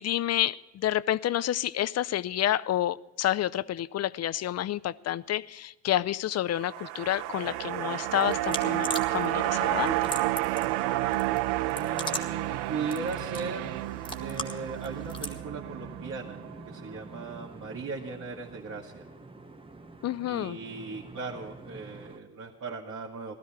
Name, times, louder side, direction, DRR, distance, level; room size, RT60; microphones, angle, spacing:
voice 1, 0.0-10.1 20.0-20.6, left 12 dB, 40° left, 18 dB, 0.5 m, -29 dB
sound 1, 6.5-16.9 17.2-17.3, right 17 dB, 80° right, 0.6 m, -31 dB
sound 2, 8.2-15.4, left 2 dB, 10° left, 2.0 m, -40 dB
voice 2, 11.7-13.9 14.2-19.1 20.3-23.4, right 4 dB, 50° right, -4 dB, 2.3 m, -38 dB
sound 3, 13.1-22.2, right 2 dB, 15° right, 1.1 m, -47 dB
16.5 x 13.0 x 4.4 m, 1.0 s
supercardioid pair, 90°, 40 cm